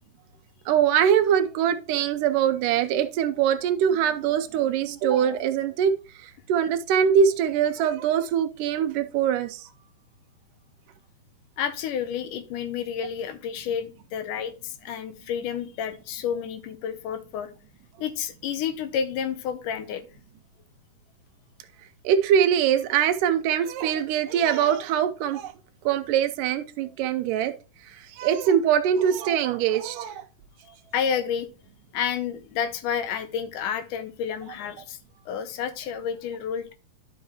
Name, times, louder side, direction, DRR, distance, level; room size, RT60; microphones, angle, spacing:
voice 1, 0.7-9.7 22.0-25.5 25.9-27.5 27.9-30.2, right 8 dB, 85° right, 8 dB, 2.2 m, -23 dB
voice 2, 11.6-17.5 18.0-20.1 30.7-31.5 31.9-35.0 35.3-36.7, left 8 dB, 75° left, 10 dB, 2.2 m, -30 dB
11.0 x 5.6 x 2.9 m, 0.34 s
omnidirectional pair, 3.9 m